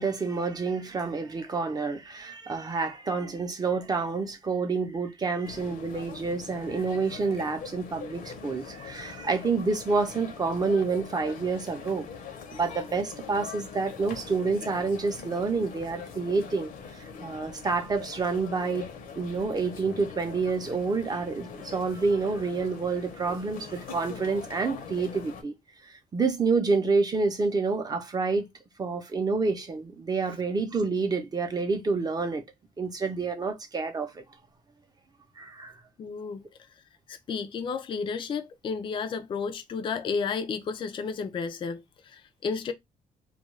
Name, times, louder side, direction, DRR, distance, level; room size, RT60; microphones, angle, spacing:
voice 1, 0.0-12.1 12.5-18.9 19.2-25.5 25.8-28.5 28.8-32.4 32.8-34.2 35.4-35.7, right 4 dB, 25° right, 0.6 m, -28 dB
sound 1, 5.4-25.4, left 6 dB, 70° left, 0.8 m, -43 dB
voice 2, 36.0-36.4 37.1-42.7, left 5 dB, 35° left, 0.4 m, -32 dB
2.3 x 2.2 x 3.0 m
cardioid pair, 115°, 15 cm